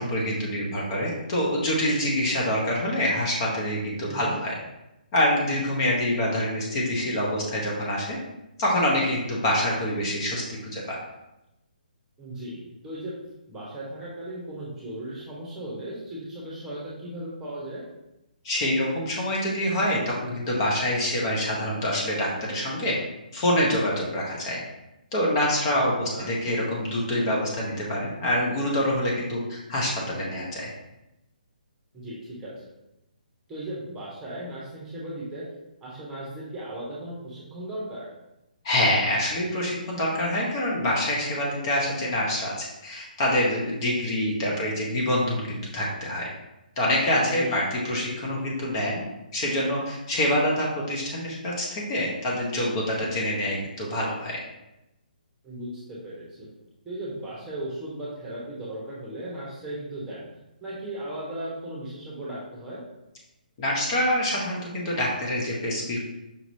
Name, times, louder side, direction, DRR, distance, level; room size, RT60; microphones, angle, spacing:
voice 1, 0.0-4.5 5.1-8.2 8.6-11.0 18.4-22.9 23.3-24.6 25.1-30.7 38.6-46.3 46.8-49.0 49.3-54.4 63.6-66.0, left 1 dB, 35° left, -3 dB, 1.0 m, -26 dB
voice 2, 4.0-4.4 12.2-13.1 13.5-17.8 25.7-26.3 31.9-32.7 33.5-35.4 35.8-38.1 47.2-47.6 55.4-56.5 56.8-60.3 60.6-62.8, right 1 dB, 10° right, -6 dB, 1.1 m, -37 dB
5.4 x 2.9 x 2.7 m, 0.92 s
hypercardioid pair, 145°, 5 cm